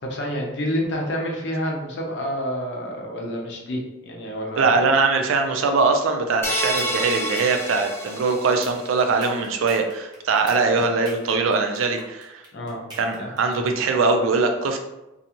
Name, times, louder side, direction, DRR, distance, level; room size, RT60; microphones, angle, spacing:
voice 1, 0.0-4.8 12.5-12.8 13.1-13.3, equal, 60° left, -1 dB, 0.6 m, -28 dB
voice 2, 4.6-12.4 13.0-14.8, right 4 dB, 85° right, 5 dB, 0.4 m, -21 dB
sound 1, 6.4-8.9, equal, 15° left, 0.3 m, -28 dB
sound 2, 6.7-13.7, right 1 dB, 20° right, 0.7 m, -41 dB
2.5 x 2.3 x 2.8 m, 0.96 s
head